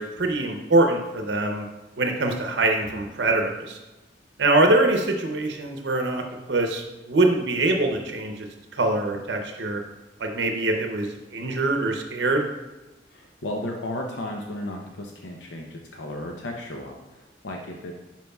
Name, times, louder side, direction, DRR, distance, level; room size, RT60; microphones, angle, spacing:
voice 1, 0.0-1.6 2.0-3.8 4.4-8.5 8.7-9.8 10.2-12.5, right 2 dB, 70° right, 3 dB, 0.7 m, -23 dB
voice 2, 13.1-17.9, left 1 dB, 80° left, 1 dB, 0.7 m, -34 dB
10.5 x 4.6 x 2.3 m, 1.1 s
head